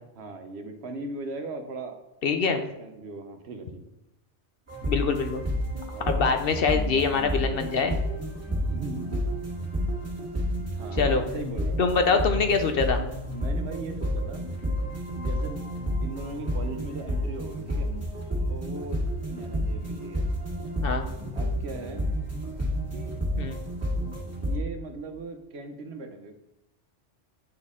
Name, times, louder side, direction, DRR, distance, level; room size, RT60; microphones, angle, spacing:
voice 1, 0.1-2.0 2.5-3.8 5.8-6.2 8.7-9.3 10.7-11.8 13.3-14.4 15.1-15.6 16.0-17.9 18.5-19.0 19.3-20.2 21.3-22.0 22.9-23.1 24.4-26.4, right 3 dB, 65° right, 6 dB, 1.0 m, -38 dB
voice 2, 2.2-2.6 4.9-5.4 6.1-8.0 11.0-11.2 11.8-13.0 20.8-21.1 23.4-23.6, left 5 dB, 60° left, 6 dB, 0.7 m, -24 dB
sound 1, 4.7-24.6, equal, 10° right, 1.7 m, -30 dB
8.8 x 4.2 x 3.6 m, 0.89 s
omnidirectional pair, 1.2 m